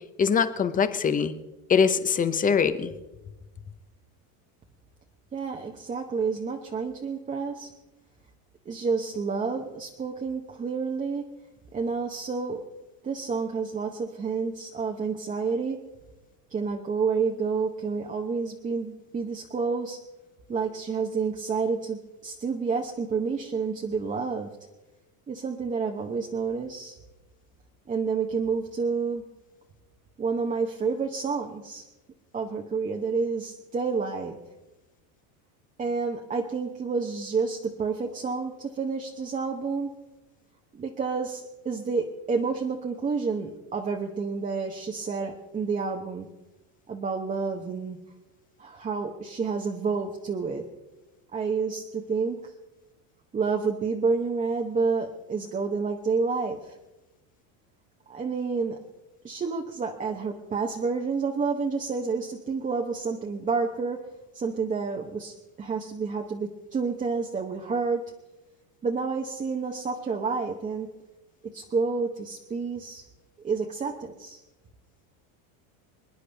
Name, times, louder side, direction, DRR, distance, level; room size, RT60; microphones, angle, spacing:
voice 1, 0.2-1.3 1.7-2.9, left 6 dB, 20° left, 11 dB, 0.7 m, -23 dB
voice 2, 5.3-7.7 8.7-11.3 11.7-12.6 13.0-15.8 16.5-20.0 20.5-24.5 25.3-27.0 27.9-29.2 30.2-31.8 32.3-34.4 35.8-39.9 40.7-46.3 46.9-48.0 48.6-50.6 51.3-52.5 53.3-56.8 58.1-58.8 59.2-64.0 64.3-68.0 68.8-70.9 71.5-73.0 73.4-74.4, right 5 dB, 20° right, 2 dB, 0.9 m, -29 dB
27.5 x 9.9 x 3.4 m, 1.0 s
supercardioid pair, 145°, 44 cm